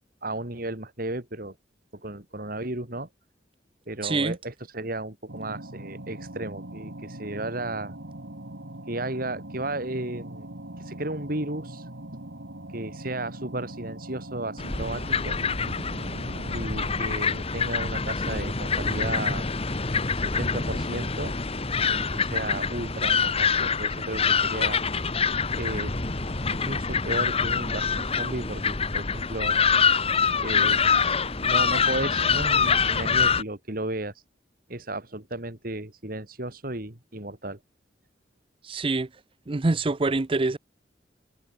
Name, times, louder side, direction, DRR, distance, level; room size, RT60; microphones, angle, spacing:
voice 1, 0.2-1.5 2.0-3.1 3.9-7.9 8.9-10.5 10.8-12.2 12.7-15.4 16.5-19.6 20.2-21.4 22.1-24.8 25.6-25.9 26.5-29.6 30.4-34.2 34.7-37.6, right 2 dB, 55° right, 3.7 m, -34 dB
voice 2, 4.0-4.4 38.7-39.1 39.5-40.6, right 3 dB, 30° right, 0.6 m, -25 dB
sound 1, 5.3-17.1, right 1 dB, 85° right, 3.3 m, -41 dB
sound 2, 14.6-33.4, left 5 dB, 35° left, 1.5 m, -25 dB
head